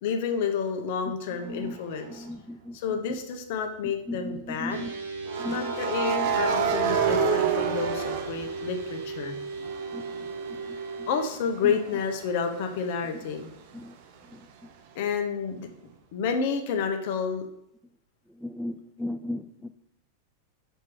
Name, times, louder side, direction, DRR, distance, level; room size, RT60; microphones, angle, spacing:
voice 1, 0.0-2.3 2.7-4.9 5.5-9.4 11.1-13.5 14.9-15.7 16.1-17.5, left 6 dB, 50° left, 5 dB, 0.9 m, -30 dB
sound 1, 2.0-2.2 5.3-9.2 9.6-13.1, right 6 dB, 45° right, 0.7 m, -29 dB
voice 2, 2.1-2.8 3.1-3.2 4.1-4.9 5.4-5.7 9.9-10.1 10.7-11.1 11.6-11.8 13.7-13.9 18.4-19.7, left 1 dB, 5° right, 11 dB, 0.4 m, -36 dB
sound 2, 4.7-11.3, right 4 dB, 65° right, 1.7 m, -36 dB
6.1 x 4.5 x 4.6 m, 0.76 s
figure-of-eight pair, 90°, 0 cm